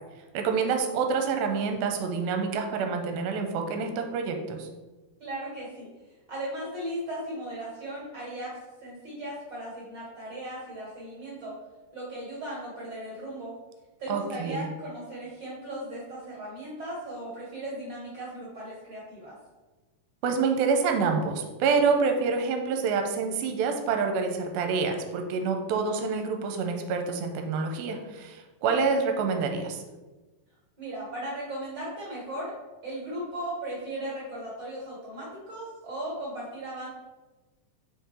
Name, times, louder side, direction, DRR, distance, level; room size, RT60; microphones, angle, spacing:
voice 1, 0.3-4.7 14.1-14.6 20.2-29.8, right 5 dB, 85° right, 4 dB, 2.4 m, -27 dB
voice 2, 5.2-5.9 6.3-11.5 11.9-13.5 14.0-19.3 30.8-32.5 32.8-36.9, right 1 dB, 40° right, -7 dB, 1.7 m, -37 dB
6.0 x 3.8 x 4.3 m, 1.2 s
omnidirectional pair, 4.3 m